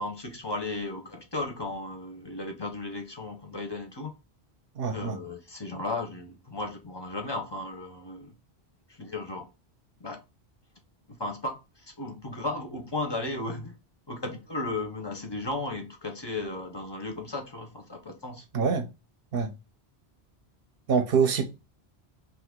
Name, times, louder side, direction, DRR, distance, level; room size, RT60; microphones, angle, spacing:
voice 1, 0.0-4.1 4.9-8.3 8.9-9.5 10.0-10.2 11.1-13.7 14.1-18.5, left 2 dB, 35° left, 0.5 m, -35 dB
voice 2, 4.8-5.2 18.5-18.9 19.3-19.5 20.9-21.5, right 6 dB, 65° right, 0.7 m, -25 dB
2.8 x 2.4 x 3.5 m
omnidirectional pair, 1.1 m